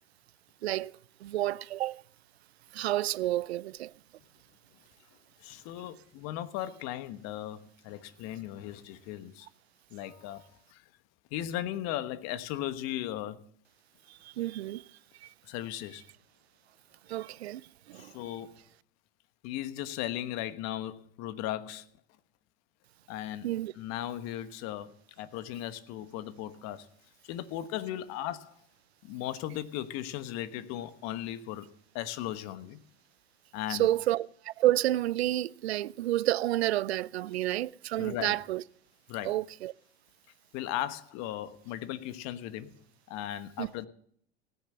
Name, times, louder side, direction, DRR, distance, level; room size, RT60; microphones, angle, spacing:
voice 1, 0.6-0.9 1.2-2.0 2.7-3.9 14.4-14.8 17.1-17.6 17.9-18.1 23.4-23.7 33.7-38.6 39.2-39.7 43.6-43.7, right 14 dB, 85° right, 0.5 m, -29 dB
voice 2, 5.4-9.5 9.9-10.8 11.3-13.4 15.5-16.0 17.9-18.5 19.4-21.9 23.1-26.9 27.2-28.6 29.0-32.8 33.5-33.9 38.0-38.4 39.1-39.4 40.5-42.8 43.1-43.9, left 12 dB, 55° left, 1.3 m, -37 dB
18.0 x 7.0 x 7.6 m
hypercardioid pair, 85°, 31 cm